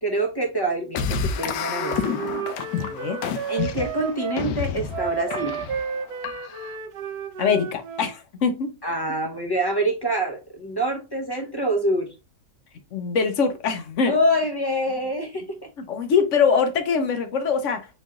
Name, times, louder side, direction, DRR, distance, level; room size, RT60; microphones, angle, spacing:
voice 1, 0.0-2.2 3.5-5.6 8.8-12.1 14.0-15.7, right 1 dB, 25° left, 0.5 m, -26 dB
sound 1, 0.9-6.8, left 7 dB, 85° left, 1.3 m, -29 dB
Wind instrument woodwind instrument, 1.3-4.4 4.9-8.1, right 6 dB, 75° right, 1.2 m, -32 dB
voice 2, 2.8-3.2 7.4-8.7 12.9-14.1 15.9-17.9, left 6 dB, 60° left, 0.9 m, -23 dB
4.1 x 3.1 x 3.6 m
omnidirectional pair, 1.8 m